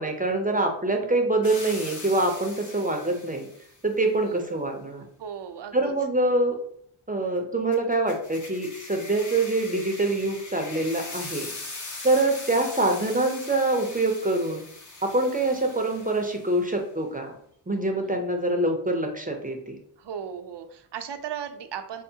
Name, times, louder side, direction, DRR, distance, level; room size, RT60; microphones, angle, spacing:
voice 1, 0.0-3.5 3.8-5.0 5.7-6.6 7.1-11.5 12.0-14.6 15.0-17.3 17.7-19.8, right 2 dB, 15° right, 3 dB, 0.6 m, -25 dB
sound 1, 1.4-3.8 7.7-16.7, left 3 dB, 35° left, 0.8 m, -41 dB
voice 2, 5.2-5.9 20.0-22.0, right 8 dB, 60° right, 8 dB, 0.6 m, -36 dB
5.4 x 2.1 x 2.7 m, 0.66 s
cardioid pair, 55°, 49 cm